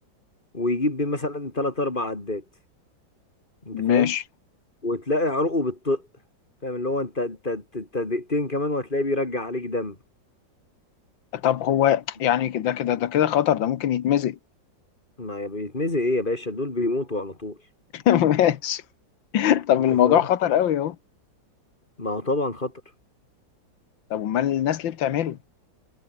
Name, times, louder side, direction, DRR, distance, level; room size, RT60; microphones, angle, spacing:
voice 1, 0.5-2.4 3.6-4.1 4.8-6.0 6.6-10.0 15.2-17.6 20.0-20.2 22.0-22.7, left 2 dB, 25° left, 3.1 m, -26 dB
voice 2, 3.7-4.2 11.3-14.4 17.9-18.8 19.3-21.0 24.1-25.4, left 10 dB, 80° left, 1.9 m, -22 dB
omnidirectional pair, 2.0 m